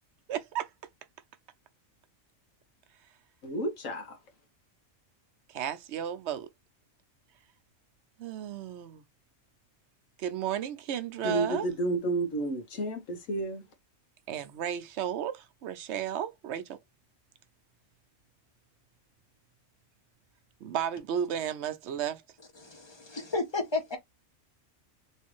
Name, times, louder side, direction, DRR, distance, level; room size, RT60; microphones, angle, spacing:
voice 1, 0.3-0.7 5.5-6.5 8.2-9.0 10.2-11.7 14.3-16.8 20.6-22.2, right 9 dB, 65° right, 0.8 m, -33 dB
voice 2, 3.4-4.2 11.2-13.6, right 2 dB, 80° left, 1.5 m, -31 dB
voice 3, 22.6-24.0, left 3 dB, 25° left, 0.8 m, -32 dB
3.2 x 3.1 x 3.0 m
omnidirectional pair, 1.3 m